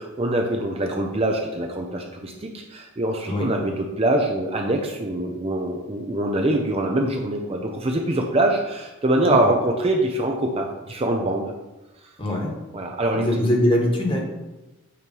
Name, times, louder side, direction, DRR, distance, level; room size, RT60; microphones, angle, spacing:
voice 1, 0.0-11.5 12.7-13.2, right 1 dB, 25° right, 2 dB, 0.5 m, -24 dB
voice 2, 12.2-12.5 13.1-14.2, left 1 dB, 25° left, -1 dB, 1.3 m, -22 dB
8.4 x 3.1 x 5.3 m, 1.0 s
head